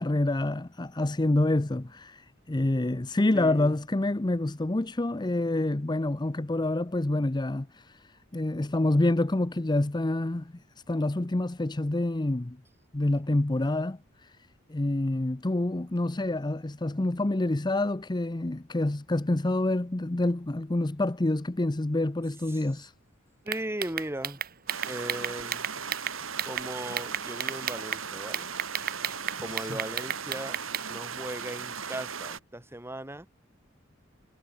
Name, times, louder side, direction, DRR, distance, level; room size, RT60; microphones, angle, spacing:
voice 1, 0.0-8.0 8.3-10.5 10.9-12.6 12.9-14.3 14.7-22.9 29.6-29.7, left 2 dB, 20° left, 0.7 m, -27 dB
voice 2, 3.3-3.7 22.5-22.6 23.4-24.4 24.8-25.7 26.4-28.5 29.4-30.6 30.9-33.3, right 1 dB, 10° right, 2.4 m, -37 dB
sound 1, 23.5-26.7 27.0-28.0 28.3-30.9, right 9 dB, 50° right, 2.1 m, -32 dB
sound 2, 24.7-32.4, right 6 dB, 85° right, 5.3 m, -37 dB
head